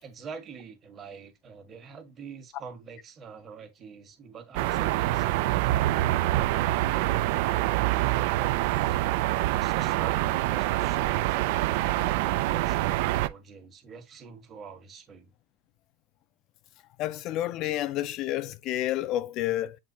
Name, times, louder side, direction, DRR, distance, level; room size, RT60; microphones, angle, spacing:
voice 1, 0.0-9.0 9.5-15.3, right 6 dB, 35° right, 1.4 m, -46 dB
sound 1, 4.5-13.3, right 16 dB, 70° right, 0.3 m, -25 dB
voice 2, 17.0-19.8, left 13 dB, 50° left, 0.4 m, -30 dB
7.3 x 2.5 x 2.7 m
supercardioid pair, 105°, 0 cm